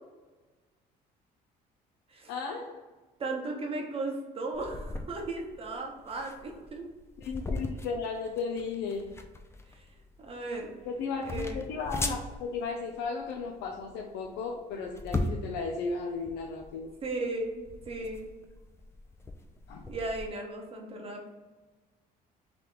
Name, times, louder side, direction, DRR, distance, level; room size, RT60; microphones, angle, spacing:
voice 1, 2.3-2.9 7.2-9.1 10.8-16.9 19.7-19.8, left 4 dB, 90° left, 1 dB, 0.5 m, -35 dB
voice 2, 3.2-6.9 9.7-9.8 10.2-10.7 11.2-11.7 17.0-18.3 19.9-21.3, right 2 dB, 35° right, 1 dB, 1.0 m, -36 dB
sound 1, 4.5-20.3, left 2 dB, 15° left, 0.4 m, -39 dB
3.4 x 2.9 x 3.8 m, 1.2 s
cardioid pair, 110°, 17 cm